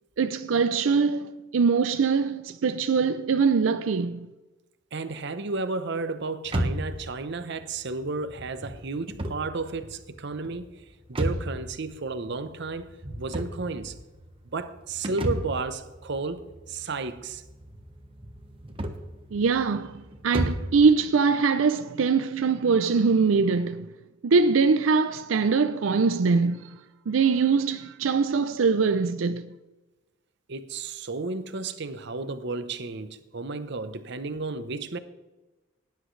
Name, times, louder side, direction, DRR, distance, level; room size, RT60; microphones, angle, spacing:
voice 1, 0.2-4.3 19.3-23.9 24.2-26.8 27.1-29.5, right 5 dB, 90° right, 0.5 m, -23 dB
voice 2, 4.9-10.8 11.1-14.0 14.4-17.4 30.5-35.0, right 3 dB, 60° right, 0.9 m, -33 dB
sound 1, 6.4-20.8, right 1 dB, 30° right, 1.2 m, -35 dB
18.5 x 10.5 x 3.2 m
head